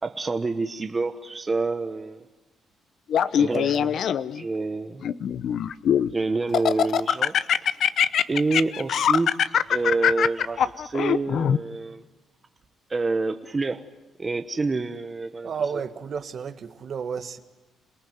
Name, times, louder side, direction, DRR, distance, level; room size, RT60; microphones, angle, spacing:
voice 1, 0.0-2.2 3.4-3.8 4.4-5.1 6.1-7.4 8.3-9.3 9.7-12.0 12.9-13.8 14.2-15.5, right 3 dB, 25° right, 1.2 m, -27 dB
Laughter, 3.1-4.4 5.0-6.1 6.5-11.6, left 8 dB, 65° left, 0.8 m, -22 dB
voice 2, 3.3-4.0 15.4-17.4, right 6 dB, 55° right, 1.7 m, -32 dB
27.5 x 19.0 x 9.5 m
cardioid pair, 90°, 0 cm